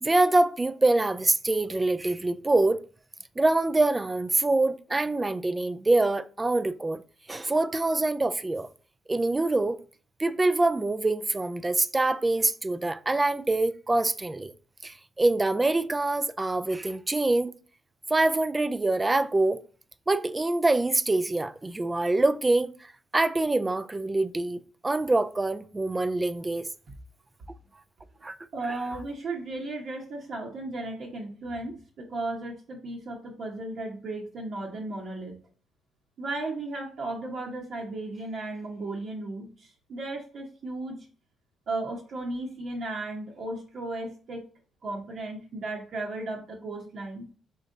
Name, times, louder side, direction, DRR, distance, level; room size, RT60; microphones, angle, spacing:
voice 1, 0.0-2.8 3.4-7.0 7.3-8.7 9.1-9.8 10.2-14.5 14.8-17.5 18.1-19.6 20.1-22.7 23.1-26.7 28.2-28.4 28.7-28.8, right 2 dB, 20° right, 0.3 m, -25 dB
voice 2, 28.5-35.3 36.2-41.1 41.7-44.4 44.8-47.3, right 2 dB, 60° right, 0.9 m, -35 dB
3.9 x 3.3 x 3.7 m
cardioid pair, 90°, 0 cm